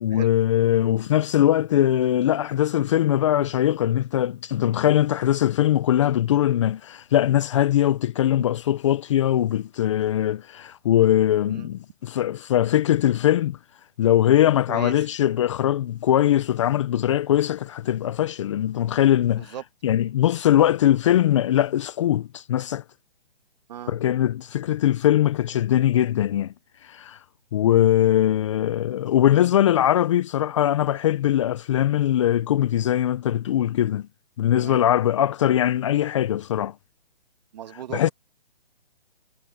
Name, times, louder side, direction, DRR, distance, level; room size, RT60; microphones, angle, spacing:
voice 1, 0.0-13.6 14.0-19.5 19.8-22.8 23.9-26.5 26.8-27.2 27.5-34.1 34.4-36.7 37.9-38.1, left 12 dB, 30° left, 0.9 m, -21 dB
voice 2, 14.7-15.1 19.4-19.6 23.7-24.0 34.6-34.9 37.5-38.1, right 10 dB, 40° right, 2.2 m, -37 dB
hypercardioid pair, 155°, 32 cm